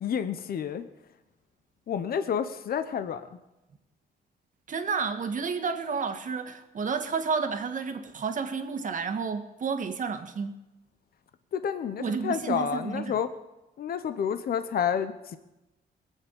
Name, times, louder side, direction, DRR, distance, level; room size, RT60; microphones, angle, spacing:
voice 1, 0.0-0.8 1.9-3.2 11.5-13.3 13.8-15.4, left 8 dB, 60° left, 10 dB, 0.9 m, -29 dB
voice 2, 4.7-10.6 12.0-13.2, right 5 dB, 50° right, 7 dB, 1.6 m, -31 dB
20.5 x 7.4 x 8.6 m, 0.99 s
cardioid pair, 110°, 18 cm